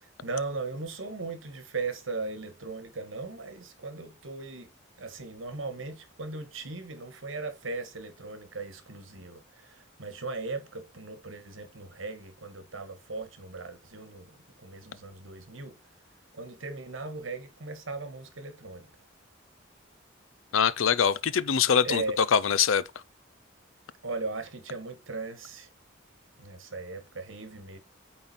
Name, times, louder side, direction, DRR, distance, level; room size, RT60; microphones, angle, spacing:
voice 1, 0.0-4.7 5.0-15.8 16.3-18.9 21.8-22.2 24.0-25.7 26.4-27.8, right 3 dB, 80° right, 1.4 m, -38 dB
voice 2, 20.5-22.8, left 7 dB, 85° left, 0.5 m, -23 dB
8.8 x 3.9 x 4.1 m
head